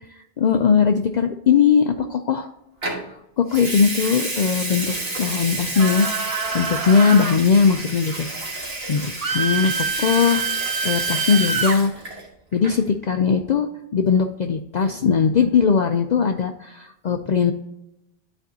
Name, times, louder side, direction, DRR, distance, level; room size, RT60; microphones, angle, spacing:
voice 1, 0.1-2.5 3.4-10.5 10.8-11.9 12.5-17.5, left 6 dB, 55° left, 6 dB, 0.5 m, -20 dB
Water tap faucet / Sink (filling or washing) / Liquid, 2.8-3.0 3.5-12.3 12.5-12.9, right 2 dB, 75° right, 1.9 m, -30 dB
sound 1, 5.7-7.4 9.2-11.8, right 5 dB, 40° right, 0.7 m, -26 dB
11.5 x 4.4 x 2.7 m, 0.86 s
omnidirectional pair, 1.0 m